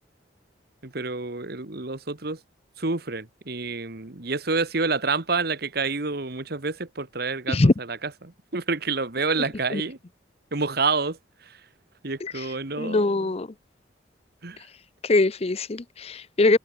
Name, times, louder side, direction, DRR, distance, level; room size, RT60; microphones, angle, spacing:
voice 1, 0.8-2.4 2.8-10.0 10.5-11.6 12.0-13.3 14.4-14.6, right 4 dB, 55° right, 1.6 m, -28 dB
voice 2, 12.8-13.5 15.0-16.6, left 2 dB, 35° left, 0.6 m, -22 dB
open air
head